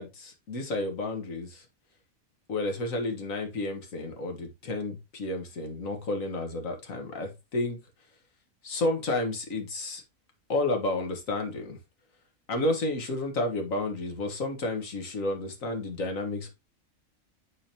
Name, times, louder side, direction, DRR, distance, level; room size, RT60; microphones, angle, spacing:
voice 1, 0.0-1.6 2.5-7.8 8.6-10.0 10.5-11.8 12.5-16.5, left 2 dB, 75° left, 1.9 m, -31 dB
9.8 x 4.0 x 2.9 m
omnidirectional pair, 1.4 m